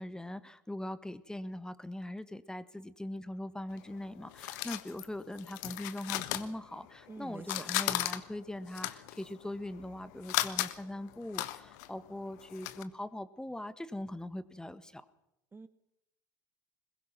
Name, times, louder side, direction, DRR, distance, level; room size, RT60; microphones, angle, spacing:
voice 1, 0.0-15.1, left 1 dB, 5° left, 14 dB, 1.5 m, -41 dB
sound 1, 3.7-7.1 7.4-12.8, left 16 dB, 70° left, 1.4 m, -36 dB
voice 2, 7.1-7.7 15.5-15.7, right 4 dB, 20° right, 13 dB, 1.4 m, -46 dB
22.0 x 21.0 x 6.1 m, 0.87 s
hypercardioid pair, 70°, 10 cm